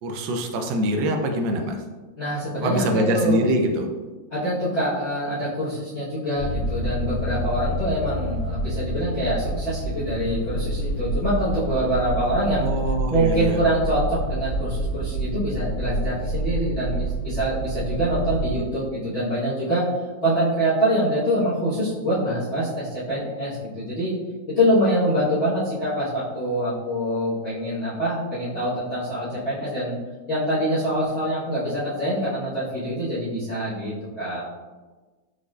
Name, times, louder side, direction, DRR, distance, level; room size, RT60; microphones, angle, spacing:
voice 1, 0.0-1.8 2.6-3.9 12.6-13.6, right 1 dB, 75° right, 4 dB, 1.2 m, -24 dB
voice 2, 2.2-3.4 4.3-12.7 13.1-19.8 20.2-24.1 24.6-29.9 30.3-34.5, right 1 dB, 40° left, -13 dB, 1.2 m, -25 dB
sound 1, 6.4-18.6, right 1 dB, 85° left, 1.5 m, -28 dB
4.8 x 4.0 x 2.3 m, 1.3 s
omnidirectional pair, 2.1 m